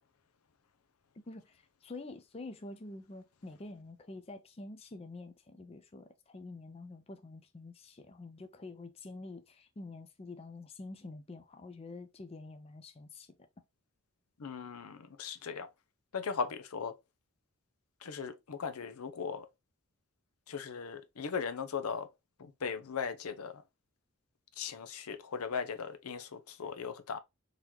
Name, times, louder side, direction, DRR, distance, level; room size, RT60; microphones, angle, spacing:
voice 1, 1.3-13.3, left 2 dB, 25° left, 0.4 m, -47 dB
voice 2, 14.4-15.7 16.1-17.0 18.0-19.5 20.5-22.1 22.4-23.6 24.6-27.2, left 6 dB, 85° left, 0.6 m, -38 dB
3.9 x 2.9 x 3.0 m
head